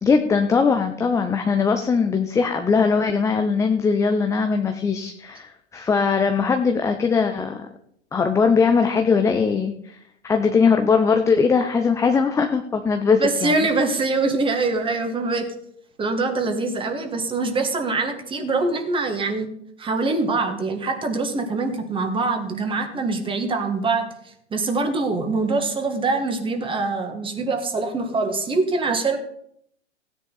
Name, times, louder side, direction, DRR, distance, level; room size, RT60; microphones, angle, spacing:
voice 1, 0.0-7.7 8.1-10.0 10.2-13.6, left 5 dB, 10° left, 5 dB, 0.6 m, -20 dB
voice 2, 13.2-15.5 16.0-19.5 19.8-24.1 24.5-29.2, right 3 dB, 15° right, 5 dB, 1.9 m, -24 dB
16.5 x 9.7 x 4.1 m, 0.69 s
figure-of-eight pair, 105°, 35 cm